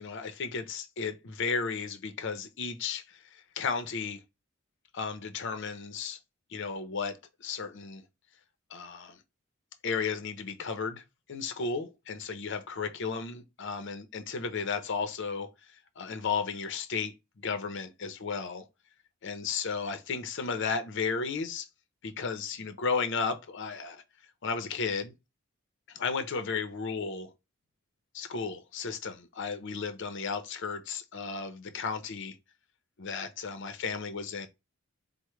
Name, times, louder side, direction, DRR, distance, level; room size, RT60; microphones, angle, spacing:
voice 1, 0.0-4.2 4.9-6.2 6.5-8.0 8.7-9.2 9.8-11.0 11.3-15.5 16.0-18.7 19.2-21.7 22.0-24.0 24.4-25.1 25.9-27.3 28.1-32.4 33.0-34.5, left 5 dB, 60° left, 0.6 m, -34 dB
4.5 x 2.1 x 3.1 m
head